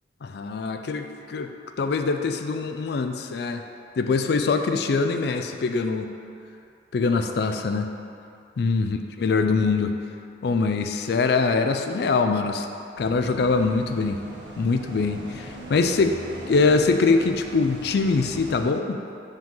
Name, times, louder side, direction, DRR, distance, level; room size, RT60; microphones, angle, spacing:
voice 1, 0.2-3.6 4.0-6.1 6.9-7.9 8.6-9.9 10.4-12.7 13.0-14.2 14.6-16.2 16.5-19.0, left 4 dB, 60° left, 6 dB, 0.4 m, -23 dB
sound 1, 12.9-18.6, right 1 dB, 70° right, 0.9 m, -40 dB
5.1 x 3.8 x 5.4 m, 2.6 s
head